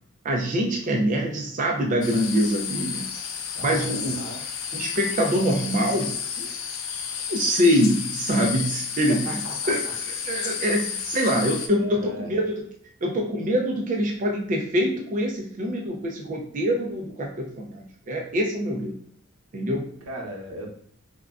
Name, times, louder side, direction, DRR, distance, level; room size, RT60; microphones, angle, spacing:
voice 1, 0.2-3.0 3.6-4.3 4.7-6.5 7.3-9.4 9.7-12.6 13.0-18.9 19.5-19.9, equal, 35° right, 0 dB, 0.3 m, -25 dB
sound 1, 2.0-11.7, left 7 dB, 65° left, 0.4 m, -32 dB
voice 2, 3.5-4.4 9.1-9.9 11.8-12.3 20.1-20.7, right 1 dB, 85° right, 1 dB, 0.8 m, -37 dB
3.5 x 2.2 x 2.3 m, 0.66 s
head